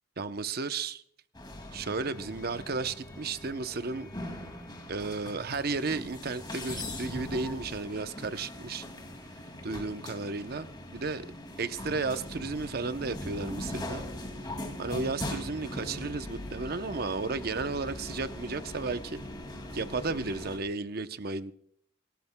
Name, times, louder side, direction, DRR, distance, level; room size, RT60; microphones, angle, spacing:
voice 1, 0.2-1.0 1.7-4.1 4.9-8.8 9.6-11.3 11.6-14.1 14.8-19.2 19.7-21.5, right 3 dB, 55° right, 0.8 m, -33 dB
sound 1, 1.3-20.6, left 1 dB, 25° left, 2.3 m, -41 dB
28.0 x 13.0 x 2.2 m
head